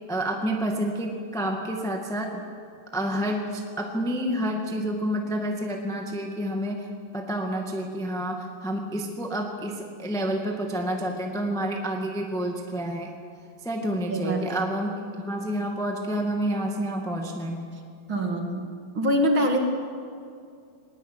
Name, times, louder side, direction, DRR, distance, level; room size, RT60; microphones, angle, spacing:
voice 1, 0.1-2.4 2.9-6.9 7.1-13.1 13.6-14.9 15.3-17.6, right 1 dB, ahead, 2 dB, 1.2 m, -29 dB
voice 2, 14.1-14.7 18.1-18.6 18.9-19.6, equal, 40° right, 2 dB, 2.6 m, -24 dB
20.5 x 20.0 x 9.2 m, 2.3 s
omnidirectional pair, 3.9 m